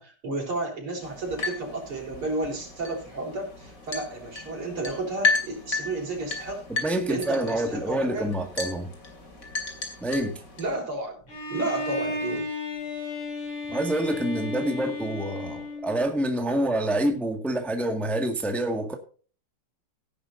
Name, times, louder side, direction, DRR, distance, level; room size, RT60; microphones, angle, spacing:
voice 1, 0.0-6.6 6.9-8.3 10.6-11.2 11.5-12.5, right 2 dB, 80° right, 1 dB, 5.6 m, -32 dB
sound 1, 1.0-10.8, left 3 dB, 40° left, 3.0 m, -33 dB
voice 2, 6.8-8.9 10.0-10.4 13.7-19.0, right 1 dB, ahead, 4 dB, 1.5 m, -27 dB
Bowed string instrument, 11.3-16.3, left 2 dB, 65° left, 6.5 m, -34 dB
17.0 x 10.5 x 2.6 m, 0.40 s
omnidirectional pair, 2.3 m